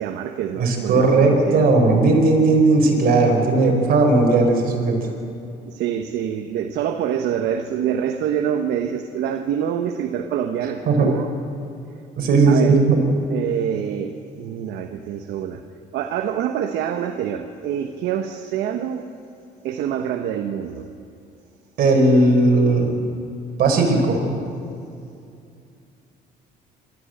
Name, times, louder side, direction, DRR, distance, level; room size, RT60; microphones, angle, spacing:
voice 1, 0.0-1.7 5.7-11.3 12.5-12.8 13.3-15.6 15.9-19.1 19.6-20.9, right 9 dB, 80° right, 6 dB, 1.1 m, -26 dB
voice 2, 0.6-4.9 10.9-11.1 12.2-13.0 21.8-22.9 23.6-24.3, right 3 dB, 65° right, 2 dB, 4.9 m, -16 dB
25.5 x 13.5 x 8.0 m, 2.5 s
cardioid pair, 110°, 17 cm